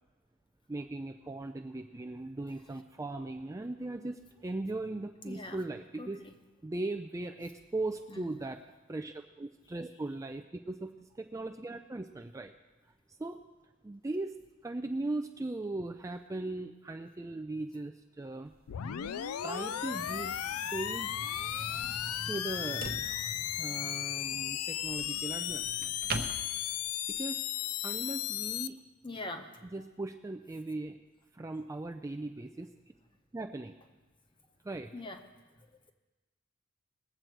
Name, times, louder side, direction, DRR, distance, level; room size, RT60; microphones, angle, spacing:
voice 1, 0.7-6.3 6.6-8.6 8.9-12.5 13.1-13.4 13.8-18.5 19.4-20.4 20.7-21.1 22.3-22.9 23.6-25.9 27.1-27.4 27.8-28.8 29.7-31.0 31.3-32.7 33.3-33.7 34.6-34.9, right 2 dB, 15° right, 5 dB, 0.3 m, -38 dB
voice 2, 5.3-5.6 6.0-6.3 8.1-8.3 26.1-26.2 29.0-29.5 34.9-35.2, left 2 dB, 25° left, 6 dB, 0.9 m, -42 dB
sound 1, 18.5-27.2, right 3 dB, 45° right, 0.8 m, -45 dB
sound 2, 18.7-28.7, left 11 dB, 90° left, 0.4 m, -35 dB
sound 3, 19.4-24.4, left 2 dB, 55° left, 0.7 m, -49 dB
20.0 x 7.7 x 4.6 m, 1.2 s
head